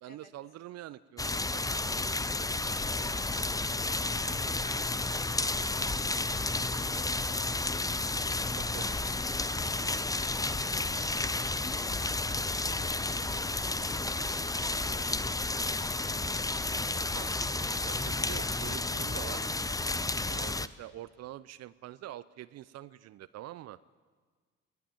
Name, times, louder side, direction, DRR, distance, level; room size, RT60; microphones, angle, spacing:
voice 1, 0.0-1.6 8.6-8.9 13.9-14.4 17.1-19.4 20.2-23.8, right 14 dB, 55° right, 16 dB, 0.6 m, -46 dB
sound 1, 1.2-20.7, left 2 dB, 10° left, 0.7 m, -32 dB
voice 2, 4.1-13.5 14.1-17.0, left 2 dB, 30° left, 3 dB, 3.4 m, -56 dB
23.5 x 17.0 x 7.2 m, 1.5 s
figure-of-eight pair, 45°, 32 cm